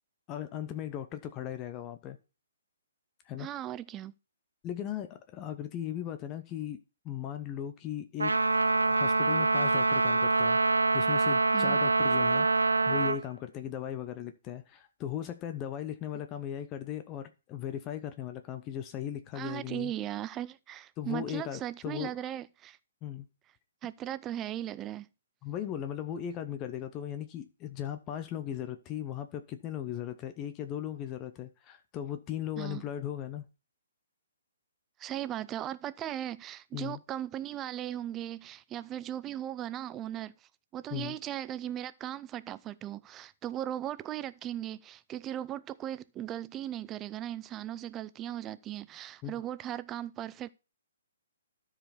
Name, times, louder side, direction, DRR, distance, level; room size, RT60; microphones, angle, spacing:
voice 1, 0.3-2.2 3.2-3.5 4.6-6.8 7.0-10.6 10.9-19.9 21.0-22.1 23.0-23.3 25.4-33.4 36.7-37.0 40.9-41.2 49.2-49.3, left 10 dB, 25° left, 0.8 m, -37 dB
voice 2, 3.4-4.1 11.5-11.8 19.3-22.8 23.8-25.1 32.6-32.8 35.0-40.3 40.7-50.5, right 12 dB, 20° right, 0.5 m, -38 dB
Trumpet, 8.2-13.2, right 3 dB, 90° right, 0.4 m, -25 dB
13.0 x 5.0 x 4.2 m
figure-of-eight pair, 135°, 0 cm